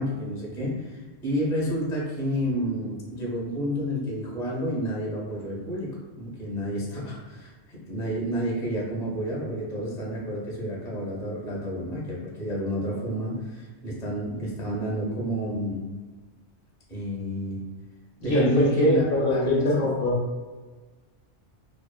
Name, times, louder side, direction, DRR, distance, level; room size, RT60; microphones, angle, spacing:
voice 1, 0.0-15.8 16.9-17.6 18.2-19.8, equal, 5° left, -4 dB, 0.4 m, -30 dB
voice 2, 18.2-20.2, left 1 dB, 60° left, -5 dB, 0.7 m, -23 dB
2.5 x 2.4 x 2.3 m, 1.3 s
omnidirectional pair, 1.2 m